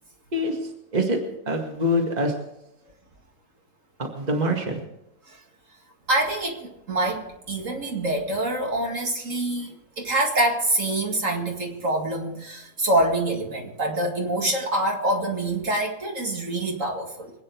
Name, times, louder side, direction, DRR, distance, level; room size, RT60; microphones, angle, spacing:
voice 1, 1.5-2.3 4.0-4.8, equal, 25° right, 2 dB, 2.0 m, -24 dB
voice 2, 6.1-17.3, right 1 dB, 55° right, 1 dB, 2.4 m, -26 dB
25.0 x 9.4 x 4.6 m, 0.87 s
omnidirectional pair, 1.7 m